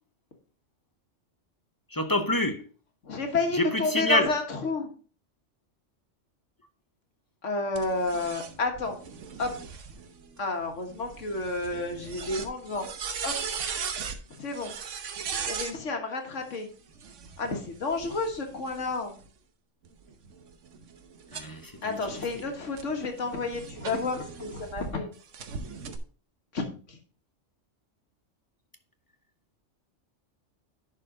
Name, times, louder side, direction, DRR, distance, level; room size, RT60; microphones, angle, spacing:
voice 1, 1.9-2.6 3.5-4.3 21.3-22.4, left 1 dB, 20° left, 0.6 m, -27 dB
voice 2, 3.0-4.9 7.4-9.0 9.4-9.5 10.4-12.9 13.2-13.4 14.3-14.7 15.4-16.7 17.4-19.2 21.8-25.1 26.5-27.0, left 3 dB, 80° left, 1.7 m, -31 dB
sound 1, 7.8-15.8 16.9-19.3 19.8-24.9 25.3-26.0, right 6 dB, 80° right, 1.2 m, -39 dB
10.5 x 4.6 x 3.8 m
omnidirectional pair, 1.2 m